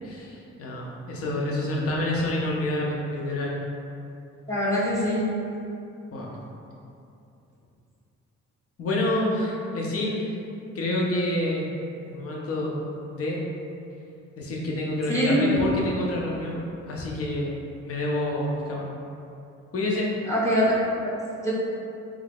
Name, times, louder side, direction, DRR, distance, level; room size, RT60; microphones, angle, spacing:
voice 1, 0.0-3.5 6.1-6.4 8.8-10.4 10.7-11.7 12.1-12.7 13.1-13.4 14.4-16.6 16.9-17.5 17.8-18.9 19.7-20.1, left 1 dB, 50° left, -3 dB, 0.8 m, -28 dB
voice 2, 4.5-5.2 15.1-15.4 20.3-20.8 21.0-21.1 21.4-21.5, equal, 10° left, -7 dB, 0.9 m, -23 dB
3.5 x 2.5 x 3.4 m, 2.7 s
cardioid pair, 90°, 30 cm